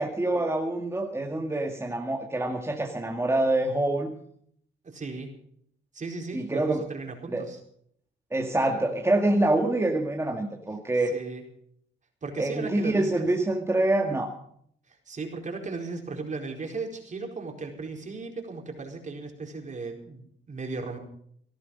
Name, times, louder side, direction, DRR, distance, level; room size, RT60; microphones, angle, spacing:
voice 1, 0.0-4.2 6.3-6.8 7.3-7.4 8.3-11.1 12.4-14.3, right 2 dB, 15° right, 1 dB, 2.1 m, -26 dB
voice 2, 4.8-5.3 5.9-7.6 11.1-11.4 12.2-13.3 14.9-21.0, right 3 dB, 40° right, 2 dB, 4.4 m, -36 dB
18.0 x 13.0 x 5.4 m, 0.65 s
cardioid pair, 90°, 20 cm